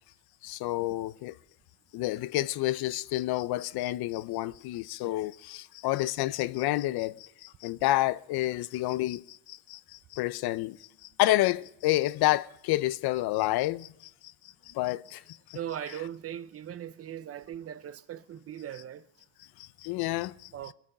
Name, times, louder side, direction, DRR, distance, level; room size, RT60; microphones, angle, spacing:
voice 1, 0.4-1.4 1.9-14.3 14.7-15.6 19.6-20.5, left 16 dB, 70° left, 0.6 m, -29 dB
voice 2, 15.5-19.0 20.5-20.7, right 10 dB, 40° right, 0.6 m, -39 dB
22.5 x 9.1 x 5.4 m
cardioid pair, 130°, 38 cm